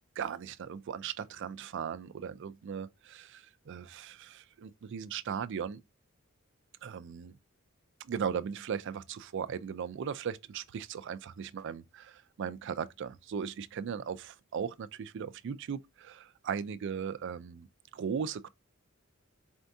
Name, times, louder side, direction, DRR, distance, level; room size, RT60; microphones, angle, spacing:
voice 1, 0.2-5.8 6.8-7.4 8.0-17.7 17.9-18.5, right 7 dB, 60° right, 0.4 m, -38 dB
4.3 x 2.7 x 3.4 m
head